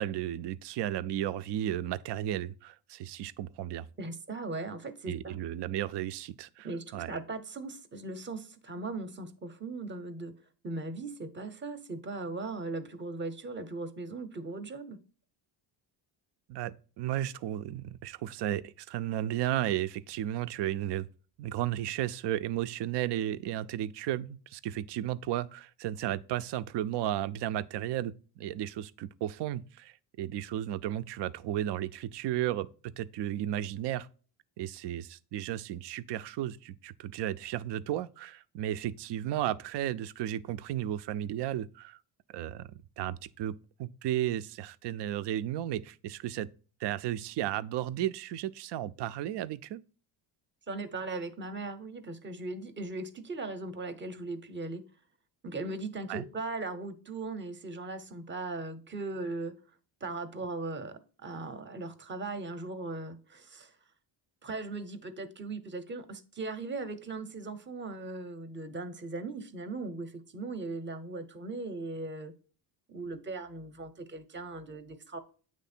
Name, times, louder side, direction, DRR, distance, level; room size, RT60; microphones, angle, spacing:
voice 1, 0.0-3.9 5.1-7.1 16.5-21.1 21.4-34.1 34.6-42.0 42.3-42.7 43.0-46.5 46.8-49.8 56.1-56.3, right 12 dB, 60° right, 0.5 m, -34 dB
voice 2, 4.0-5.4 6.6-10.3 10.6-15.0 50.7-54.8 55.4-59.6 60.0-63.7 64.4-72.3 72.9-75.2, right 3 dB, 20° right, 0.7 m, -38 dB
8.3 x 3.2 x 4.3 m
cardioid pair, 95°, 50 cm